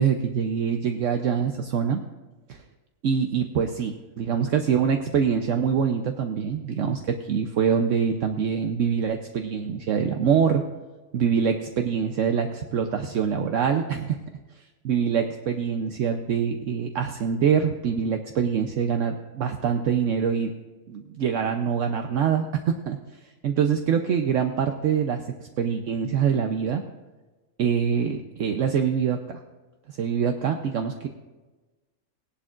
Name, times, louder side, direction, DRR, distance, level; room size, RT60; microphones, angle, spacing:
voice 1, 0.0-2.0 2.5-2.6 3.0-10.6 11.1-14.2 14.8-20.5 20.9-23.0 23.4-26.8 27.6-29.4 29.9-31.1, right 7 dB, 70° right, 5 dB, 1.0 m, -24 dB
17.5 x 11.5 x 2.5 m, 1.2 s
omnidirectional pair, 1.4 m